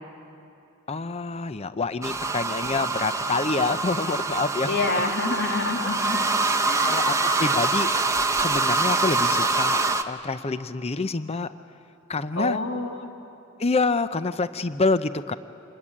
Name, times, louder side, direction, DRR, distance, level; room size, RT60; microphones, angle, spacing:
voice 1, 0.9-5.0 6.8-7.9 8.3-9.8 10.1-11.5 12.1-12.6 13.6-15.3, left 3 dB, 30° left, 12 dB, 0.6 m, -27 dB
sound 1, 2.0-10.0, right 3 dB, 15° right, 0.9 m, -25 dB
voice 2, 4.7-6.2 6.7-7.1 12.4-13.1, left 3 dB, 60° left, 3 dB, 2.4 m, -28 dB
26.5 x 21.0 x 9.9 m, 2.8 s
head